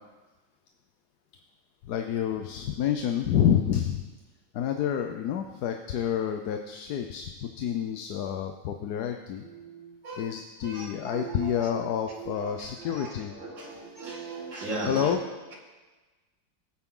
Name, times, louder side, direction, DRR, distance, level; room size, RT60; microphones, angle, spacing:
voice 1, 1.8-4.0 4.5-9.4 10.2-13.3 14.9-15.2, left 9 dB, 65° left, 5 dB, 1.2 m, -28 dB
voice 2, 9.4-10.3 10.6-11.8 12.1-15.5, right 3 dB, 75° right, -3 dB, 3.0 m, -38 dB
19.5 x 9.1 x 3.8 m, 1.2 s
omnidirectional pair, 2.0 m